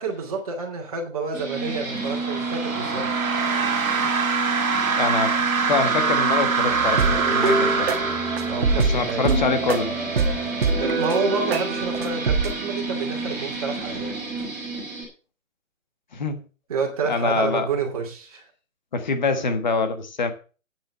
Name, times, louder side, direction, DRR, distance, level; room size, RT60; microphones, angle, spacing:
voice 1, 0.0-3.1 8.4-9.3 10.8-14.1 16.7-18.4, right 4 dB, 25° right, 1 dB, 2.6 m, -29 dB
sound 1, 1.3-15.0, right 3 dB, 5° right, 1.7 m, -30 dB
sound 2, 1.9-8.9, right 5 dB, 85° right, 1.9 m, -24 dB
voice 2, 4.9-7.9 8.7-10.0 16.1-16.4 17.0-17.7 18.9-20.3, left 4 dB, 35° left, 8 dB, 1.5 m, -25 dB
sound 3, 6.7-12.6, right 3 dB, 45° right, 1.7 m, -24 dB
9.1 x 6.2 x 7.5 m, 0.36 s
hypercardioid pair, 175°, 41 cm